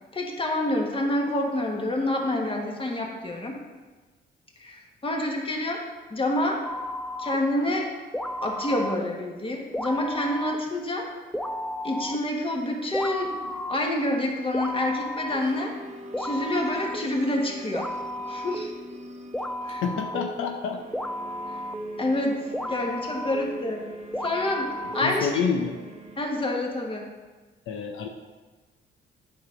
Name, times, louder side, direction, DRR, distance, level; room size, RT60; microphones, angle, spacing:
voice 1, 0.1-3.6 4.6-6.6 7.2-7.9 8.4-11.1 11.8-15.7 16.2-17.9 18.3-18.7 19.6-19.8 22.0-23.8 24.2-25.4 26.2-27.1, left 1 dB, 25° left, 0 dB, 1.5 m, -28 dB
sound 1, 6.6-7.4 8.1-9.0 9.7-10.6 11.3-12.2 12.9-13.8 14.5-15.4 16.1-17.3 17.7-19.0 19.3-25.4, equal, 5° left, 0.4 m, -34 dB
sound 2, 15.3-26.2, equal, 35° right, 0.9 m, -44 dB
voice 2, 19.7-20.8 25.0-25.8 27.7-28.1, left 5 dB, 80° left, 4 dB, 0.7 m, -28 dB
8.6 x 5.5 x 3.8 m, 1.3 s
cardioid pair, 90°, 20 cm